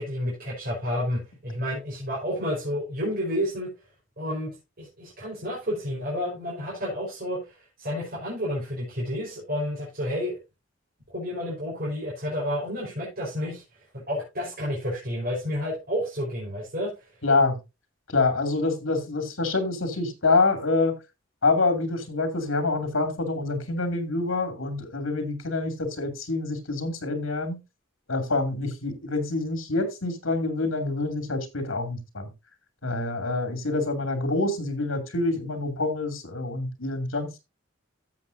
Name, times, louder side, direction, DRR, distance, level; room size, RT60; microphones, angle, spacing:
voice 1, 0.0-3.7 4.2-4.5 4.8-10.4 11.1-13.6 14.1-16.9, equal, 50° right, -5 dB, 4.6 m, -30 dB
voice 2, 17.2-17.6 18.1-21.0 21.4-27.6 28.1-32.3 32.8-37.4, left 3 dB, 80° left, 6 dB, 2.6 m, -26 dB
13.5 x 7.2 x 2.7 m, 0.25 s
head